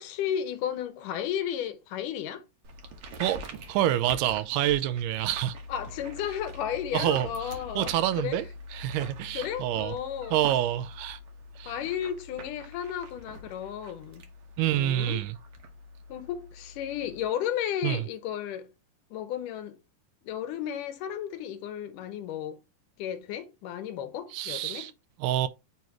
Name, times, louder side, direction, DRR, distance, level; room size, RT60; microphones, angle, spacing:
voice 1, 0.0-2.4 5.7-8.4 9.3-10.4 11.7-14.3 14.7-15.2 16.1-18.7 19.1-19.8 20.2-22.6 23.0-24.9, left 9 dB, 75° left, 2.3 m, -33 dB
sound 1, 2.6-17.3, equal, 60° right, 1.6 m, -44 dB
voice 2, 3.2-5.6 6.9-10.0 10.3-11.2 11.6-11.7 14.6-15.4 17.8-18.0 24.3-24.9 25.2-25.5, right 12 dB, 80° right, 2.1 m, -27 dB
7.1 x 3.0 x 4.6 m
omnidirectional pair, 3.9 m